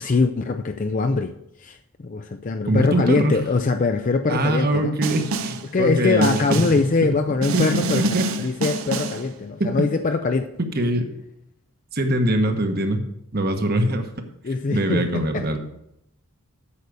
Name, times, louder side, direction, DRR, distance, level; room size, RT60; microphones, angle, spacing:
voice 1, 0.0-5.0 5.6-8.0 8.4-10.5 14.4-15.5, left 4 dB, 35° left, 7 dB, 0.4 m, -23 dB
voice 2, 2.7-3.4 4.3-7.2 7.5-8.3 9.6-9.7 10.6-11.1 11.9-13.1 13.3-14.1 14.7-15.6, right 1 dB, 45° right, 6 dB, 1.2 m, -23 dB
Snare drum, 5.0-5.7 6.2-6.9 7.4-9.3, right 2 dB, 70° right, 0.8 m, -27 dB
8.4 x 6.6 x 6.8 m, 0.77 s
head